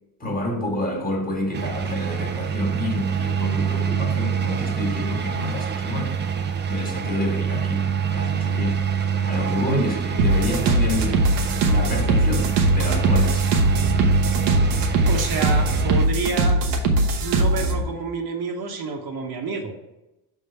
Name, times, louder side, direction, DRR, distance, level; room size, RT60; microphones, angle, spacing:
voice 1, 0.2-6.2 6.7-8.8 9.3-11.2 11.6-13.5, left 1 dB, 20° left, 0 dB, 1.8 m, -28 dB
sound 1, 1.5-16.1, right 7 dB, 25° right, 0.5 m, -26 dB
sound 2, 10.2-17.8, right 2 dB, 85° right, 1.1 m, -20 dB
voice 2, 15.0-16.6 17.2-19.7, right 4 dB, 55° right, 2 dB, 1.2 m, -29 dB
5.7 x 3.6 x 5.6 m, 0.96 s
supercardioid pair, 95°, 45 cm